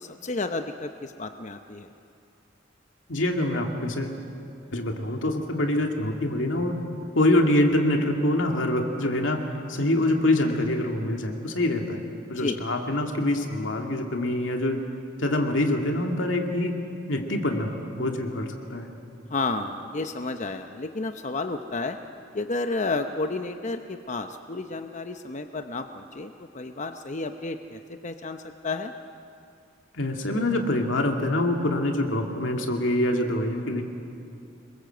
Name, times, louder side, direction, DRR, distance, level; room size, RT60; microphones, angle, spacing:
voice 1, 0.0-1.9 12.4-12.6 19.3-22.0 22.3-28.9, left 3 dB, 40° left, 6 dB, 0.8 m, -31 dB
voice 2, 3.1-4.2 4.7-6.8 7.1-9.4 9.7-12.0 12.3-14.8 15.2-16.8 17.1-18.9 29.9-33.8, left 1 dB, 85° left, 3 dB, 2.5 m, -25 dB
26.0 x 22.5 x 7.9 m, 2.5 s
head